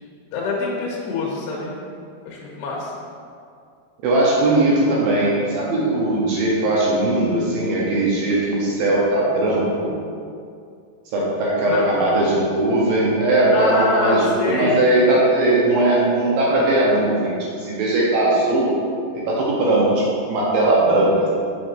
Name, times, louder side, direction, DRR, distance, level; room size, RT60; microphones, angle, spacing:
voice 1, 0.3-1.8 2.3-2.9 11.7-12.0 13.5-14.8, left 3 dB, 80° left, -4 dB, 2.7 m, -25 dB
voice 2, 4.0-9.9 11.1-18.7 19.3-21.3, right 1 dB, 80° right, -5 dB, 2.1 m, -19 dB
6.7 x 6.1 x 2.6 m, 2.3 s
omnidirectional pair, 5.3 m